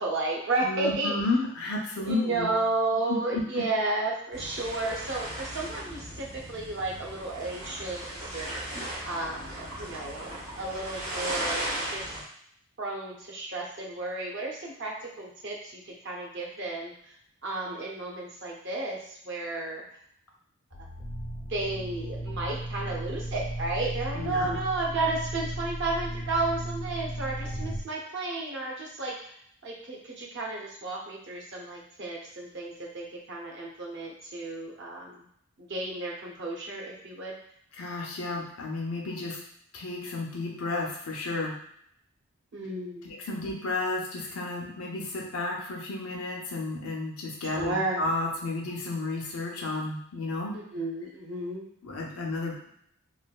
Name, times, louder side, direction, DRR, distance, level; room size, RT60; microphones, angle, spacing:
voice 1, 0.0-1.1 2.1-8.5 9.0-12.0 12.8-16.9 17.4-19.8 21.5-29.2 29.6-35.2 35.6-37.4 42.5-43.1 47.5-48.0 50.5-51.7, right 2 dB, 55° right, -2 dB, 0.7 m, -32 dB
voice 2, 0.6-2.5 3.1-3.6 24.1-24.6 37.7-39.4 39.7-41.6 43.0-50.5 51.8-52.7, left 2 dB, 80° left, -2 dB, 0.7 m, -32 dB
sound 1, 4.3-12.2, right 1 dB, 85° right, 1.5 m, -36 dB
sound 2, 20.7-27.8, right 1 dB, 30° left, 0.4 m, -35 dB
3.2 x 2.5 x 2.2 m, 0.68 s
head